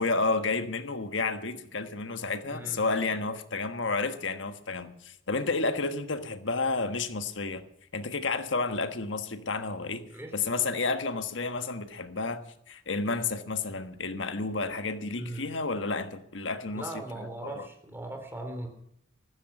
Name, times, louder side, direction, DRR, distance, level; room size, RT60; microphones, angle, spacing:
voice 1, 0.0-7.6 7.9-17.7, left 3 dB, 70° left, 1.5 m, -31 dB
voice 2, 2.5-2.8 10.1-10.7 15.2-15.4 16.7-18.7, right 2 dB, 15° right, 3.5 m, -39 dB
15.0 x 14.5 x 6.1 m
head